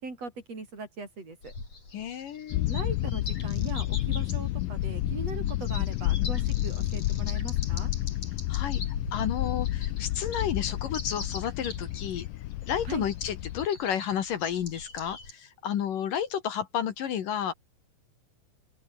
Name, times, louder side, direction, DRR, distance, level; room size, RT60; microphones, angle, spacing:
voice 1, 0.0-1.5 2.7-7.9 12.9-13.1, right 3 dB, 35° right, 6.7 m, -40 dB
sound 1, 1.4-15.3, left 3 dB, 35° left, 8.7 m, -43 dB
voice 2, 1.9-2.7 8.5-8.8 9.1-12.2 12.7-17.5, left 9 dB, 60° left, 2.9 m, -31 dB
sound 2, 2.5-13.7, left 16 dB, 80° left, 1.9 m, -30 dB
open air
omnidirectional pair, 4.9 m